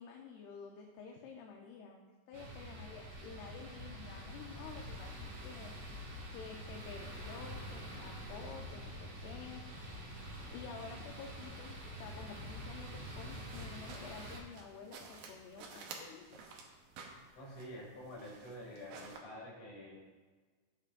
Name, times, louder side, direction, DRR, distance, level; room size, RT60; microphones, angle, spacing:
voice 1, 0.0-5.7 6.3-9.6 10.5-16.3, left 6 dB, 80° left, 1 dB, 2.6 m, -50 dB
sound 1, 2.3-14.4, equal, 45° right, 1.9 m, -46 dB
sound 2, 13.3-19.2, right 4 dB, 75° right, 2.3 m, -53 dB
voice 2, 17.3-19.9, equal, 45° left, -5 dB, 4.0 m, -48 dB
15.0 x 7.0 x 2.5 m, 1.4 s
omnidirectional pair, 4.9 m